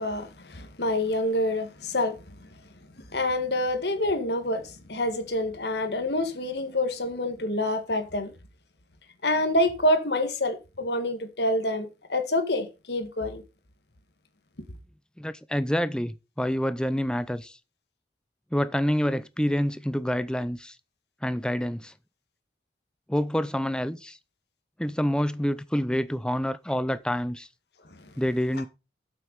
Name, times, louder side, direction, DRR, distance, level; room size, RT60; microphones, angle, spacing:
voice 1, 0.0-2.5 3.1-8.3 9.2-13.4, left 1 dB, 70° left, 1.8 m, -27 dB
voice 2, 15.2-17.6 18.5-20.8 21.2-21.9 23.1-24.2 24.8-27.5 28.2-28.7, equal, 5° left, 0.5 m, -27 dB
8.0 x 7.8 x 5.3 m
head